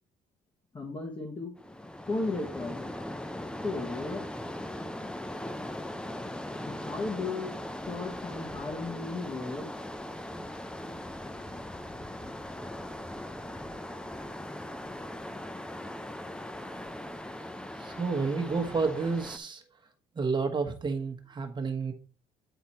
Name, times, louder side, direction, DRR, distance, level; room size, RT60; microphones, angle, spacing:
voice 1, 0.7-1.5 2.1-3.0 3.6-4.3 6.6-9.7, left 3 dB, 25° left, 0 dB, 1.5 m, -35 dB
sound 1, 1.6-19.4, left 1 dB, 5° left, 0.6 m, -39 dB
voice 2, 17.8-19.6 20.1-21.9, right 4 dB, 25° right, 4 dB, 1.4 m, -30 dB
9.1 x 3.9 x 4.3 m, 0.43 s
cardioid pair, 110°, 17 cm